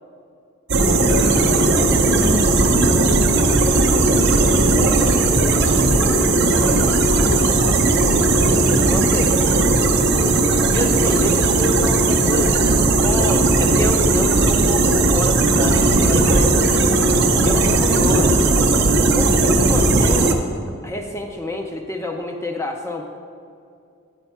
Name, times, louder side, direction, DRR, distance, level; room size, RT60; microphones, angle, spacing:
sound 1, 0.7-20.3, right 2 dB, 50° right, 0.5 m, -16 dB
voice 1, 0.8-8.5 18.0-18.4, left 2 dB, 75° left, -2 dB, 0.7 m, -29 dB
voice 2, 6.0-6.4 8.9-9.6 10.7-12.7 13.0-16.9 17.4-18.2 19.1-20.4 20.8-23.0, left 1 dB, 10° left, 3 dB, 0.3 m, -28 dB
9.0 x 4.5 x 4.3 m, 2.5 s
head